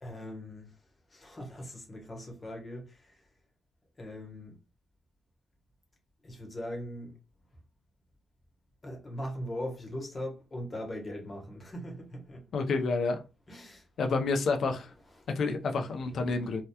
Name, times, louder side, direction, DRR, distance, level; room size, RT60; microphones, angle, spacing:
voice 1, 0.0-0.7 1.1-3.2 4.0-4.6 6.2-7.2 8.8-12.5 13.5-13.9 15.2-15.3 16.1-16.2, equal, 25° left, 0.9 m, -40 dB
voice 2, 12.5-13.2 14.0-14.9 15.4-16.6, left 3 dB, 60° left, 0.5 m, -29 dB
2.8 x 2.2 x 2.2 m
cardioid pair, 135°, 0 cm